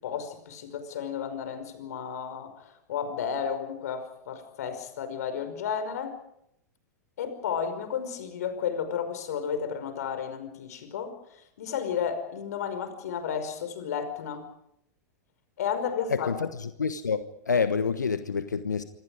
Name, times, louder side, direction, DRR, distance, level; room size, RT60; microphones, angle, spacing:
voice 1, 0.0-6.2 7.2-14.4 15.6-16.3, left 7 dB, 65° left, 5.3 m, -33 dB
voice 2, 16.1-18.8, left 5 dB, 85° left, 1.2 m, -28 dB
27.0 x 26.5 x 5.0 m
figure-of-eight pair, 100°, 9 cm